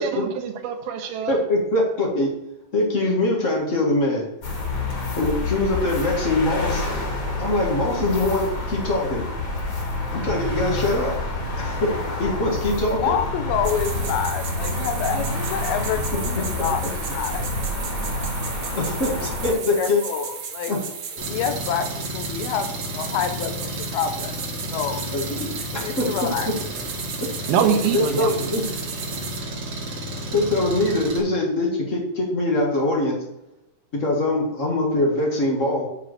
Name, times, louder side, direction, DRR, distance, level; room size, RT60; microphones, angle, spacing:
voice 1, 0.0-1.4 27.5-28.5, right 7 dB, 85° right, 6 dB, 2.8 m, -24 dB
voice 2, 1.3-2.3 2.7-4.3 5.2-6.8 7.4-9.2 10.1-11.1 11.6-11.9 12.2-13.0 18.7-20.0 20.7-20.8 25.1-25.5 25.7-26.1 26.4-26.5 27.9-28.7 30.3-33.2 33.9-35.9, left 2 dB, 60° left, -2 dB, 0.7 m, -23 dB
sound 1, 4.4-19.5, left 2 dB, 40° left, 2.3 m, -28 dB
voice 3, 12.9-17.5 19.2-20.7 21.2-24.3 24.7-25.0 25.7-26.5, left 8 dB, 90° left, 7 dB, 2.7 m, -28 dB
sound 2, 13.6-29.4, right 7 dB, 65° right, 1.5 m, -35 dB
Engine, 21.2-31.2, right 1 dB, 45° right, 1.6 m, -32 dB
8.3 x 4.2 x 6.4 m, 0.92 s
omnidirectional pair, 4.2 m